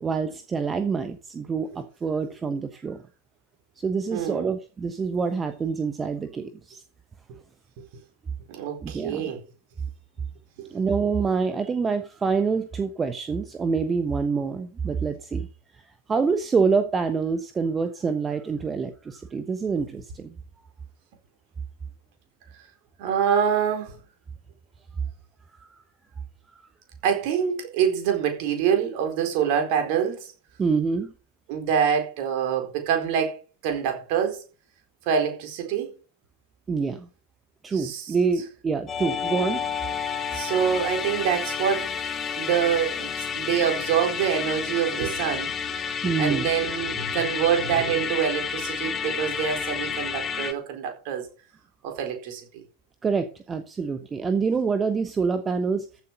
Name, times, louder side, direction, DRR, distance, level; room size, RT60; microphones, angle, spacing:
voice 1, 0.0-3.0 3.8-6.8 8.8-9.2 10.7-15.5 16.1-20.3 25.6-25.7 26.5-26.6 30.6-31.1 36.7-37.1 37.6-39.6 46.0-46.5 53.0-55.9, right 5 dB, 20° right, 1.1 m, -26 dB
voice 2, 4.1-4.5 7.8-7.9 8.5-9.4 10.6-10.7 23.0-24.0 27.0-30.3 31.5-33.4 33.6-34.4 35.0-35.9 37.7-38.1 40.3-41.9 42.3-45.7 46.0-51.3 51.8-52.6, right 8 dB, 45° right, 4.3 m, -25 dB
Musical instrument, 38.9-50.5, left 7 dB, 20° left, 1.8 m, -30 dB
14.5 x 7.7 x 5.4 m
figure-of-eight pair, 90°, 0 cm